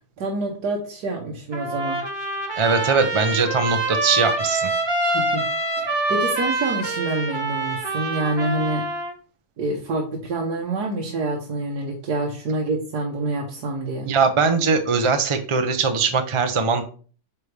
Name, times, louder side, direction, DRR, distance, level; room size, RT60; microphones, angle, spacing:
voice 1, 0.2-2.0 5.1-5.4 5.8-8.8 9.6-14.1, right 2 dB, 75° right, -1 dB, 1.5 m, -27 dB
Trumpet, 1.5-9.1, right 2 dB, 20° right, 0.9 m, -25 dB
voice 2, 2.6-4.7 14.0-16.8, right 5 dB, 40° right, 7 dB, 0.4 m, -21 dB
8.4 x 3.5 x 3.3 m, 0.40 s
omnidirectional pair, 1.7 m